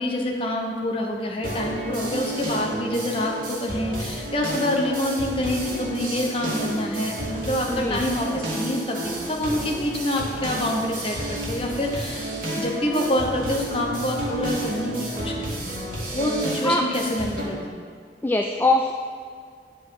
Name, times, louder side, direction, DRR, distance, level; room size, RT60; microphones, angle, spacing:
voice 1, 0.0-17.8, left 1 dB, 30° left, 0 dB, 1.1 m, -27 dB
sound 1, 1.4-17.4, right 1 dB, 55° right, 2.5 m, -31 dB
voice 2, 18.2-18.9, left 2 dB, 10° left, 2 dB, 0.3 m, -22 dB
9.6 x 7.5 x 4.1 m, 2.1 s
head